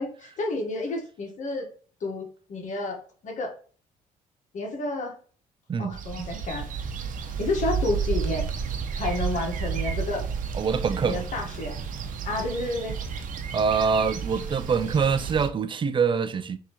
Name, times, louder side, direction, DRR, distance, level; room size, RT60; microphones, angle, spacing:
voice 1, 0.0-1.7 2.0-2.2 2.5-3.5 4.5-5.1 5.8-6.7 7.4-8.5 8.9-10.2 11.0-11.8 12.2-13.0, left 2 dB, 55° left, 1.4 m, -30 dB
sound 1, 5.9-15.5, right 6 dB, 60° right, 0.8 m, -31 dB
voice 2, 10.6-11.2 13.5-16.6, right 6 dB, 35° right, 0.5 m, -24 dB
6.0 x 2.9 x 3.0 m
supercardioid pair, 75°, 15 cm